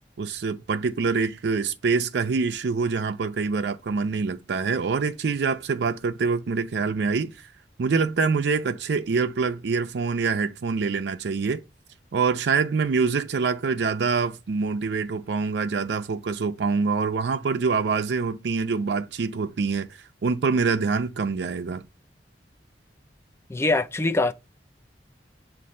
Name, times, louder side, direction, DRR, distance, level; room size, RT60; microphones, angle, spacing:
voice 1, 0.2-7.5 7.8-11.6 12.1-19.9 20.2-21.8, right 4 dB, 65° right, 0.4 m, -25 dB
voice 2, 23.5-24.3, left 2 dB, 15° left, 0.4 m, -23 dB
7.4 x 2.6 x 5.3 m
head